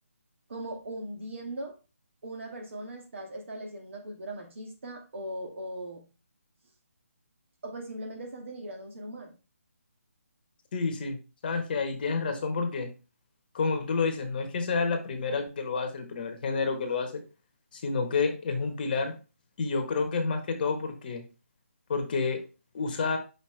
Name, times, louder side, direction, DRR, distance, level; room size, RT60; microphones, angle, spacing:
voice 1, 0.5-1.8 2.2-6.1 7.6-9.4, right 1 dB, 60° right, 2.1 m, -39 dB
voice 2, 10.7-11.2 11.4-12.9 13.5-17.2 17.7-19.2 19.6-21.2 21.9-22.4 22.7-23.2, left 4 dB, 40° left, 1.3 m, -29 dB
6.4 x 5.0 x 3.3 m
figure-of-eight pair, 150°, 8 cm